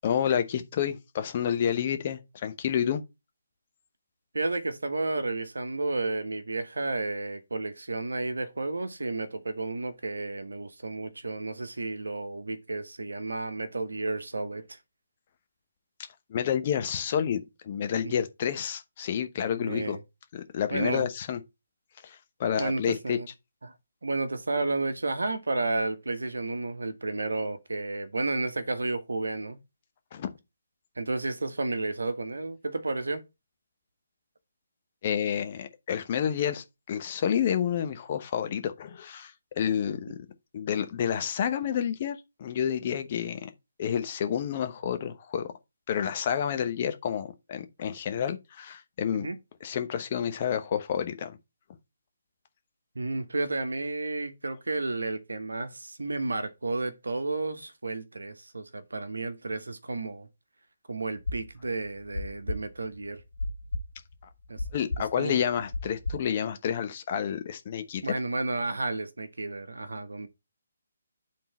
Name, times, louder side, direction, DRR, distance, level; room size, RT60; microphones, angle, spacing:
voice 1, 0.0-3.0 16.3-20.0 20.3-21.4 22.0-23.2 30.1-30.3 35.0-40.2 40.5-43.5 43.8-45.5 45.9-49.3 49.6-51.4 64.7-68.1, left 8 dB, 40° left, 0.9 m, -29 dB
voice 2, 4.3-14.8 19.6-20.0 20.7-21.1 22.6-23.3 23.6-23.7 24.0-29.6 31.0-33.2 49.1-49.4 52.9-60.3 60.9-63.2 64.5-64.6 65.2-65.4 68.0-70.3, right 2 dB, 75° right, 1.1 m, -32 dB
sound 1, 61.2-66.4, left 2 dB, 75° left, 1.1 m, -33 dB
9.2 x 3.8 x 4.3 m
figure-of-eight pair, 145°, 0 cm